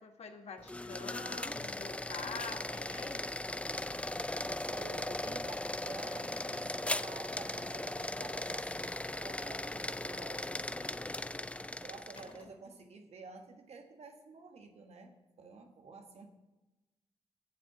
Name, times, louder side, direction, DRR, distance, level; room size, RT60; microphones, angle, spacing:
voice 1, 0.0-3.3, left 5 dB, 70° left, 5 dB, 1.3 m, -46 dB
sound 1, 0.6-12.4, left 2 dB, 10° left, 0.4 m, -38 dB
sound 2, 1.5-1.8 5.1-5.5 6.4-6.5 7.3-7.7 10.0-10.1 10.7-10.9 12.2-12.9, left 2 dB, 55° left, 3.0 m, -54 dB
voice 2, 4.7-11.0 11.8-16.3, right 4 dB, 70° right, 4 dB, 1.5 m, -51 dB
9.0 x 7.7 x 6.0 m, 1.1 s
cardioid pair, 50°, 11 cm